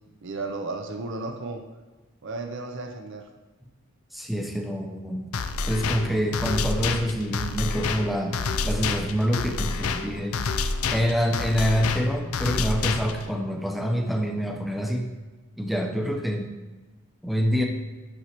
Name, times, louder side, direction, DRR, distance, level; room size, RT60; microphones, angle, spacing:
voice 1, 0.2-1.6 2.2-3.3, right 3 dB, 60° right, 4 dB, 0.6 m, -33 dB
voice 2, 4.1-5.3 5.7-8.4 8.6-10.4 10.9-15.1 15.6-16.5 17.2-17.6, equal, ahead, 1 dB, 0.7 m, -26 dB
sound 1, 5.3-13.3, left 4 dB, 80° left, 0.5 m, -28 dB
9.8 x 6.2 x 3.0 m, 1.2 s
head